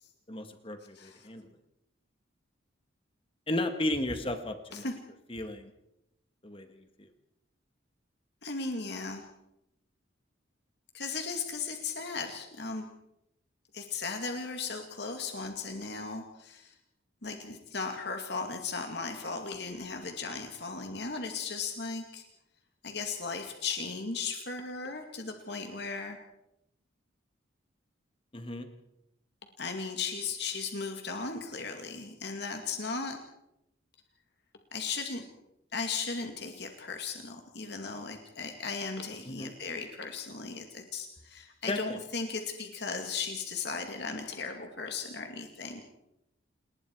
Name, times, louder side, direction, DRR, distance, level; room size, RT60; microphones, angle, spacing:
voice 1, 0.3-1.5 3.5-4.9 5.3-5.7 6.4-7.1 28.3-28.7 39.2-39.5 41.7-42.0, left 1 dB, 25° left, 7 dB, 1.7 m, -34 dB
voice 2, 1.0-1.3 4.7-4.9 8.4-9.3 10.9-12.9 13.7-16.7 17.2-22.2 22.8-26.2 29.6-33.2 34.7-35.2 35.7-45.8, left 4 dB, 55° left, 4 dB, 2.3 m, -36 dB
29.0 x 20.5 x 4.7 m, 0.83 s
head